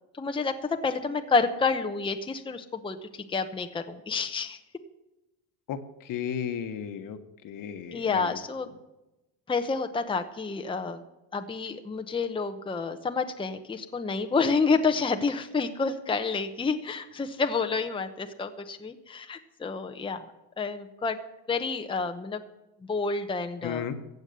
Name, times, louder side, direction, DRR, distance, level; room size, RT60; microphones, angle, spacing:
voice 1, 0.2-4.6 7.9-8.7 9.5-11.0 11.3-20.3 20.6-21.2 21.5-22.4 22.8-23.8, left 4 dB, 15° left, 6 dB, 0.9 m, -29 dB
voice 2, 5.7-7.2 7.4-8.4 23.6-24.0, left 8 dB, 60° left, 8 dB, 1.4 m, -34 dB
15.0 x 8.1 x 6.8 m, 0.96 s
cardioid pair, 120°, 38 cm